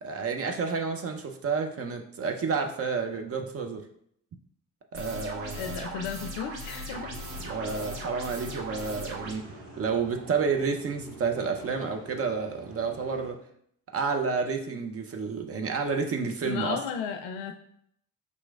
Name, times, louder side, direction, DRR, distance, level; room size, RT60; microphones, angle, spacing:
voice 1, 0.0-3.8 4.9-5.9 7.4-9.4 9.8-13.4 13.9-16.8, right 5 dB, 30° right, 4 dB, 0.6 m, -30 dB
sound 1, 4.9-9.3, right 1 dB, 50° right, 1.1 m, -39 dB
voice 2, 5.5-7.1 16.4-17.5, left 7 dB, 65° left, 6 dB, 0.5 m, -34 dB
sound 2, 6.9-13.3, equal, 70° right, 1.2 m, -46 dB
5.0 x 3.0 x 2.3 m, 0.68 s
figure-of-eight pair, 45°, 46 cm